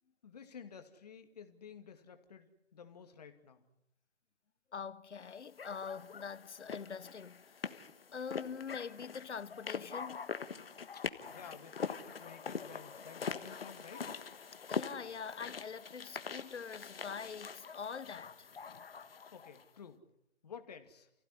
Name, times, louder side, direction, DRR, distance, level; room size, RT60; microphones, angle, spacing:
voice 1, 0.2-3.7 10.9-11.0 11.3-14.1 19.3-20.0 20.4-21.1, left 7 dB, 35° left, 2.3 m, -52 dB
voice 2, 4.7-7.7 8.1-10.3 14.7-18.5, left 6 dB, 80° left, 1.1 m, -44 dB
sound 1, 5.6-19.6, left 6 dB, 60° left, 1.5 m, -43 dB
29.5 x 16.0 x 9.8 m
hypercardioid pair, 165°, 34 cm